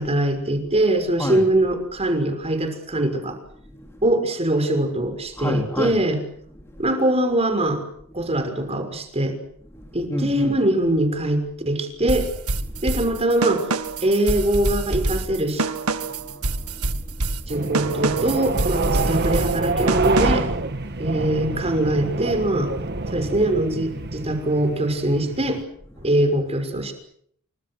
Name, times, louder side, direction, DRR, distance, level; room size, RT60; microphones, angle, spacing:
voice 1, 0.0-3.4 4.0-6.2 6.8-7.8 8.1-9.4 9.9-12.3 12.8-13.7 14.0-15.6 17.5-20.5 21.0-22.7 23.1-25.6 26.0-26.9, right 1 dB, 30° right, 7 dB, 6.1 m, -22 dB
voice 2, 3.7-4.1 5.4-5.9 6.5-6.9 8.1-8.2 9.1-9.2 9.7-10.6 12.6-12.9 14.0-14.1 15.9-17.6 20.8-21.1 22.9-23.2 24.1-24.2 25.9-26.1, left 1 dB, 10° left, 3 dB, 3.3 m, -32 dB
sound 1, 12.1-20.6, right 2 dB, 85° right, 1.8 m, -26 dB
sound 2, 17.5-25.6, right 3 dB, 50° right, 1.7 m, -27 dB
29.5 x 26.0 x 6.4 m, 0.66 s
head